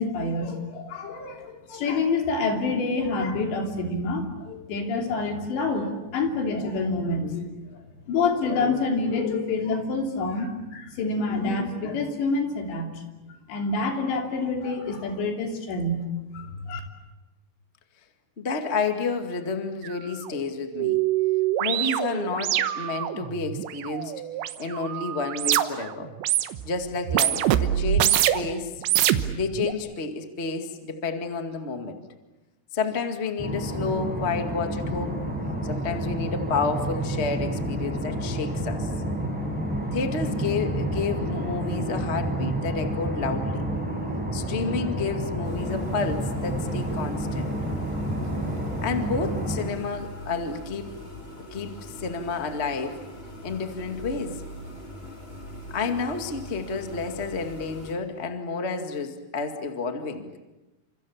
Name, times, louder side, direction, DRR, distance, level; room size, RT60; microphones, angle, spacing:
voice 1, 0.0-7.5 8.1-13.0 13.5-16.8, left 3 dB, 75° left, 3 dB, 5.3 m, -27 dB
voice 2, 18.4-21.0 21.6-24.1 24.6-26.1 26.6-28.7 29.3-32.0 32.7-35.2 35.6-38.9 39.9-43.7 44.3-47.5 48.8-50.9 51.5-53.0 53.4-54.4 55.7-60.3, left 4 dB, 50° left, 6 dB, 0.7 m, -30 dB
sound 1, 19.8-19.9 20.3-25.9 26.2-26.7 27.0-28.5 28.8-29.7, right 12 dB, 85° right, 3.4 m, -25 dB
sound 2, 33.4-49.6, right 1 dB, ahead, 6.5 m, -29 dB
sound 3, 45.4-57.9, equal, 15° left, 3.0 m, -42 dB
29.5 x 26.5 x 7.3 m, 1.1 s
omnidirectional pair, 5.1 m